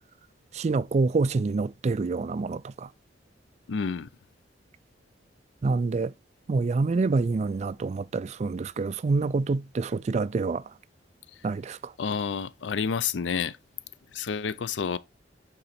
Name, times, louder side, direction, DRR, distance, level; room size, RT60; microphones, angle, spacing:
voice 1, 0.5-2.9 5.6-6.1 6.5-10.6 11.4-11.9, right 3 dB, 40° right, 0.3 m, -27 dB
voice 2, 3.7-4.1 12.0-13.6 14.1-15.0, left 6 dB, 85° left, 0.4 m, -29 dB
8.7 x 3.9 x 4.2 m
head